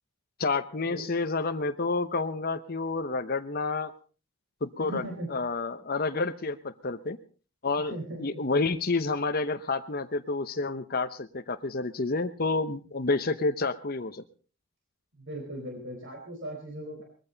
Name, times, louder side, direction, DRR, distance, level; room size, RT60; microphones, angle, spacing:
voice 1, 0.4-3.9 4.6-5.0 5.3-7.2 7.6-14.2, left 3 dB, 45° left, 8 dB, 0.9 m, -29 dB
voice 2, 4.8-5.3 7.9-8.4 15.2-17.0, right 1 dB, 60° right, 1 dB, 4.3 m, -38 dB
21.0 x 14.5 x 4.0 m, 0.38 s
head